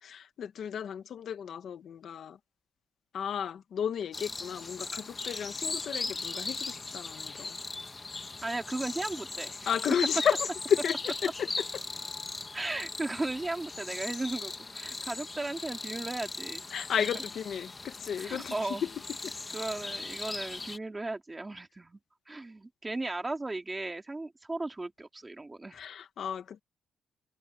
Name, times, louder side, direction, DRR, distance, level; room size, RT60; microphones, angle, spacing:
voice 1, 0.0-2.4 3.1-7.6 9.7-11.8 16.7-18.9 19.2-19.3 25.7-26.6, left 8 dB, 55° left, 1.4 m, -33 dB
sound 1, 4.1-20.8, left 3 dB, 20° left, 1.2 m, -38 dB
voice 2, 8.4-9.7 12.5-16.7 17.0-17.2 18.2-18.9 19.5-22.0 22.3-25.8, right 2 dB, 15° right, 2.3 m, -36 dB
cardioid pair, 160°, 0 cm